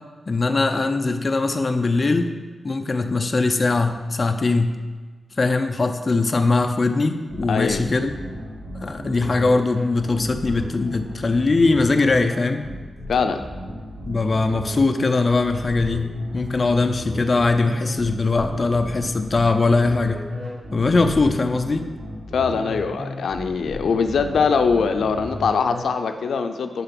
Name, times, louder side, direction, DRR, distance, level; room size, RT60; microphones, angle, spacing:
voice 1, 0.3-2.3 2.6-4.7 5.4-8.2 8.8-12.7 14.1-20.2 20.7-21.9, left 3 dB, 30° left, 6 dB, 0.5 m, -21 dB
sound 1, 7.3-25.8, left 1 dB, 85° right, 2.3 m, -34 dB
voice 2, 7.5-7.8 13.1-13.4 22.3-26.8, left 5 dB, 85° left, 7 dB, 0.4 m, -22 dB
6.7 x 4.9 x 6.0 m, 1.4 s
wide cardioid pair, 150°, 0 cm